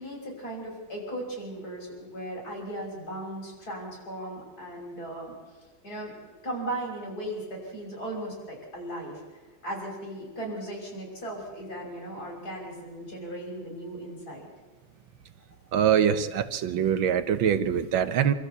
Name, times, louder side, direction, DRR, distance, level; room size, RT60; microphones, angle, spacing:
voice 1, 0.0-5.3 5.8-9.2 9.6-14.5, right 1 dB, 50° left, -1 dB, 6.5 m, -37 dB
voice 2, 15.7-18.3, right 8 dB, 75° right, 11 dB, 1.7 m, -24 dB
26.0 x 13.5 x 8.2 m, 1.3 s
omnidirectional pair, 2.1 m